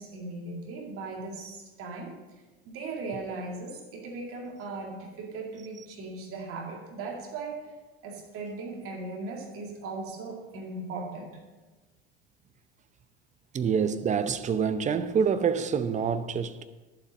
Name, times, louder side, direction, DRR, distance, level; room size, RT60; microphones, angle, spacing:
voice 1, 0.0-2.2 2.7-7.7 8.0-11.4, right 3 dB, 45° right, 2.3 m, -38 dB
voice 2, 13.5-16.6, right 6 dB, 25° right, 0.7 m, -26 dB
11.5 x 7.5 x 5.1 m
hypercardioid pair, 80°, 31 cm